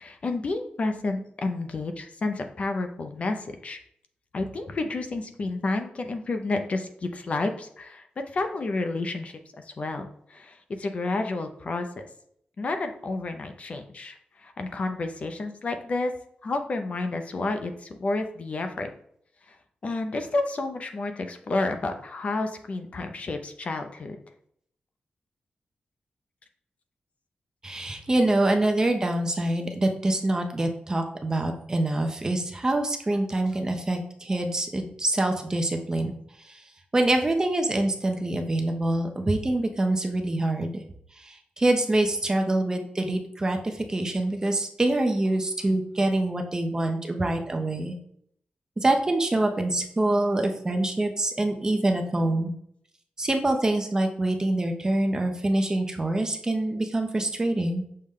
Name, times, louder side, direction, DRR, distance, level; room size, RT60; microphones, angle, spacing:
voice 1, 0.0-3.8 4.3-8.0 8.3-9.4 9.7-11.9 12.6-14.2 14.4-16.1 16.4-18.9 19.8-24.2, left 2 dB, 45° left, 6 dB, 0.4 m, -30 dB
voice 2, 27.6-36.1 36.4-36.6 36.9-40.8 41.2-48.0 48.8-52.5 53.2-57.8, right 1 dB, 20° right, 4 dB, 0.5 m, -25 dB
6.4 x 2.1 x 3.5 m, 0.68 s
wide cardioid pair, 150°, 3 cm